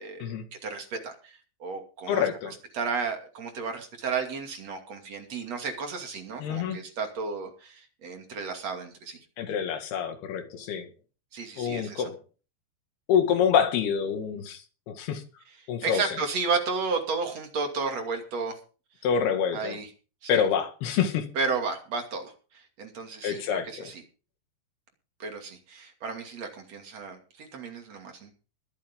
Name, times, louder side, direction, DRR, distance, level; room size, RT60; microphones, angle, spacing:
voice 1, 0.6-9.2 11.3-12.1 15.8-18.6 19.5-19.9 20.2-20.4 21.3-24.0 25.2-28.3, right 4 dB, 40° right, 4 dB, 3.1 m, -33 dB
voice 2, 2.1-2.5 6.4-6.8 9.4-10.9 11.6-12.1 13.1-15.2 15.7-16.0 19.0-19.8 20.3-21.3 23.2-23.9, left 7 dB, 65° left, 6 dB, 3.7 m, -26 dB
23.5 x 8.5 x 3.7 m, 0.36 s
omnidirectional pair, 5.1 m